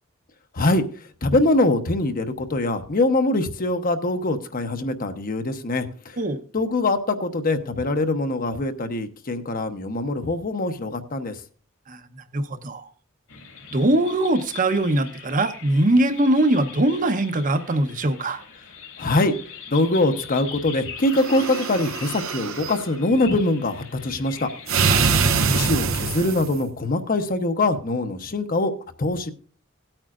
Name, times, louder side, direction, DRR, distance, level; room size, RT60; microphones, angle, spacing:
voice 1, 1.2-6.2 6.5-11.4 19.0-19.3 19.7-24.5 24.8-24.9 25.5-28.7 29.0-29.3, left 2 dB, 45° left, 7 dB, 0.9 m, -23 dB
voice 2, 11.9-12.9 13.7-18.4 24.9-25.1, right 1 dB, 40° right, 9 dB, 0.9 m, -22 dB
sound 1, 13.3-25.7, left 7 dB, 75° left, 2.8 m, -41 dB
sound 2, 21.1-22.8 24.7-26.6, right 5 dB, 75° right, 0.8 m, -23 dB
17.0 x 8.9 x 2.5 m, 0.41 s
head